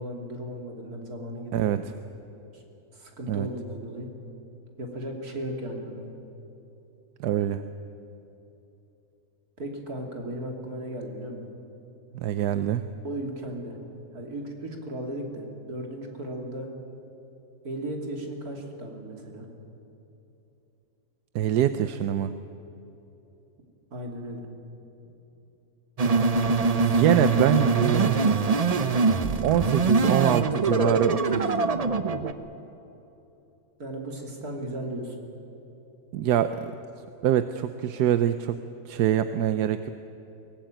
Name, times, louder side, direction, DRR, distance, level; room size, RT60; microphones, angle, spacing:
voice 1, 0.0-1.8 2.5-2.6 2.9-4.1 4.8-6.1 9.6-11.5 13.0-13.8 14.1-16.7 17.6-19.5 23.9-24.5 33.8-35.2, right 1 dB, 70° right, 1 dB, 3.4 m, -36 dB
voice 2, 7.2-7.6 12.1-12.8 21.3-22.3 26.8-28.4 29.4-31.6 36.1-36.7 37.2-38.6 38.9-39.9, right 10 dB, 90° right, 11 dB, 1.3 m, -24 dB
sound 1, 26.0-32.3, right 4 dB, 35° right, 0.6 m, -23 dB
23.0 x 18.5 x 9.1 m, 3.0 s
omnidirectional pair, 1.7 m